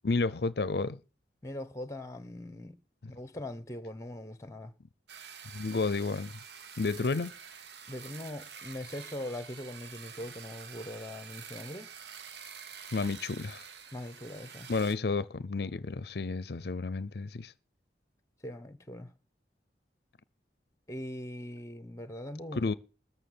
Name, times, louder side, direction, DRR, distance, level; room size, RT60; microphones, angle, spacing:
voice 1, 0.0-1.0 5.5-6.3 6.8-7.3 12.9-13.7 14.7-17.5 22.5-22.7, left 3 dB, 65° left, 0.6 m, -31 dB
voice 2, 1.4-2.7 3.1-4.7 7.9-11.9 13.9-14.7 18.4-19.1 20.9-22.7, left 1 dB, 15° left, 1.1 m, -41 dB
sound 1, 5.1-15.0, right 7 dB, 75° right, 1.1 m, -48 dB
14.0 x 5.8 x 9.5 m
head